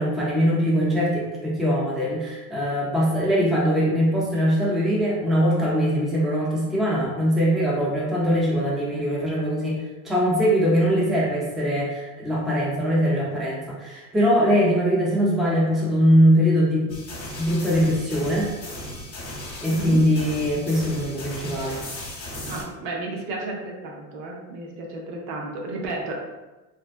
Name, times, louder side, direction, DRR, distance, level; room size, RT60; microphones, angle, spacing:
voice 1, 0.0-17.0 17.4-18.5 19.6-21.8, equal, ahead, -6 dB, 0.5 m, -22 dB
sound 1, 16.9-22.6, left 1 dB, 30° left, 0.9 m, -36 dB
voice 2, 19.7-20.0 22.5-26.1, right 2 dB, 55° right, -1 dB, 0.7 m, -33 dB
2.6 x 2.1 x 2.4 m, 1.2 s
hypercardioid pair, 85°, 46 cm